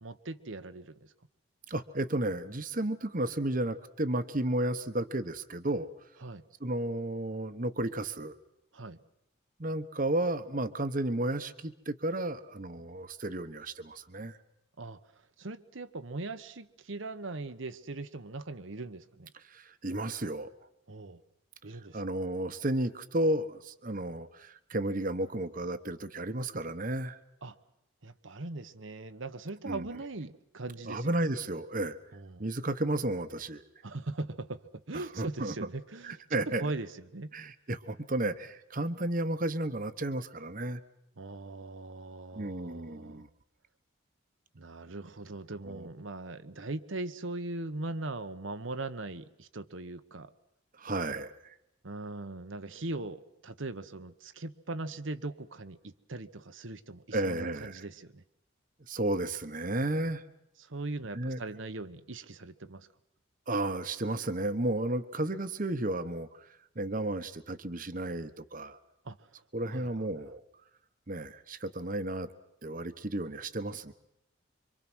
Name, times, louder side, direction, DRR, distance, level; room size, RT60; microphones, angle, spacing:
voice 1, 0.0-1.1 6.2-6.4 8.7-9.0 14.8-15.0 15.4-19.3 20.9-21.2 21.6-22.0 27.4-27.6 28.0-31.3 32.1-32.5 33.8-36.2 36.6-37.3 41.2-43.3 44.5-50.3 51.8-58.2 60.6-62.9 69.0-69.3 69.7-69.9, right 2 dB, 70° right, 11 dB, 1.1 m, -40 dB
voice 2, 1.7-5.9 6.6-8.3 9.6-14.4 19.3-20.5 21.9-27.2 29.6-29.9 30.9-32.0 32.4-33.6 34.9-35.5 36.0-36.7 37.3-40.8 42.3-43.3 45.6-45.9 50.7-51.5 57.1-57.8 58.9-60.2 61.1-61.4 63.5-66.5 66.7-68.8 69.5-70.4 71.1-72.3 72.6-73.9, right 1 dB, 40° right, 11 dB, 1.2 m, -33 dB
26.0 x 25.0 x 6.2 m, 0.83 s
head